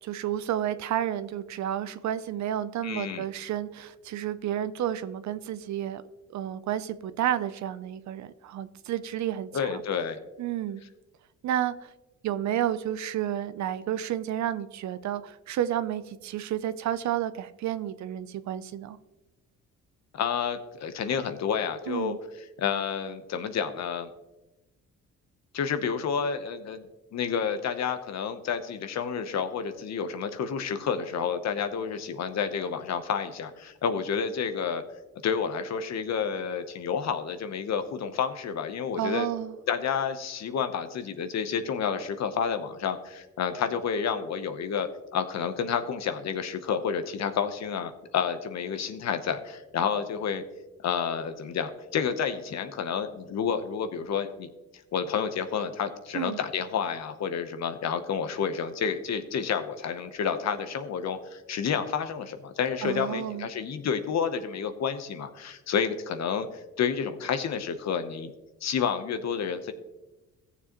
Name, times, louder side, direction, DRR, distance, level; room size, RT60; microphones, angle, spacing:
voice 1, 0.0-6.0 6.3-9.8 10.4-10.8 11.4-11.9 12.2-19.0 21.9-22.2 39.0-39.6 56.1-56.4 62.8-63.5, right 11 dB, 65° right, 13 dB, 0.6 m, -31 dB
voice 2, 2.8-3.2 9.5-10.2 20.1-22.2 22.6-24.1 25.5-34.8 35.2-39.3 39.7-50.4 50.8-54.5 54.9-68.3 68.6-69.7, left 7 dB, 60° left, 9 dB, 0.9 m, -30 dB
15.0 x 7.0 x 3.0 m, 1.1 s
cardioid pair, 90°, 30 cm